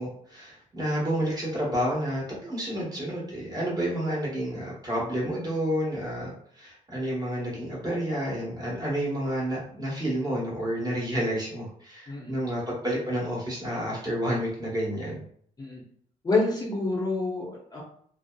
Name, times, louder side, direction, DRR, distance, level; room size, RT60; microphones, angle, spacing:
voice 1, 0.0-15.2, equal, 25° right, -4 dB, 1.1 m, -30 dB
voice 2, 12.1-12.4 15.6-15.8 16.2-17.8, left 3 dB, 25° left, -5 dB, 0.7 m, -27 dB
2.7 x 2.0 x 2.2 m, 0.62 s
cardioid pair, 100°, 16 cm